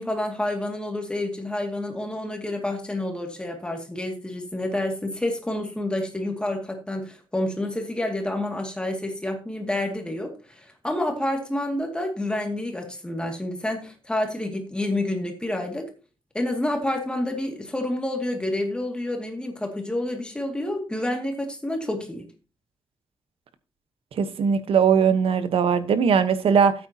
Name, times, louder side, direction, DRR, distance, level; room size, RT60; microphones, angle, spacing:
voice 1, 0.0-15.9 16.3-22.3, left 1 dB, 10° left, 2.3 m, -29 dB
voice 2, 24.1-26.7, right 6 dB, 80° right, 1.1 m, -20 dB
13.0 x 8.8 x 2.9 m
wide cardioid pair, 155°, 9 cm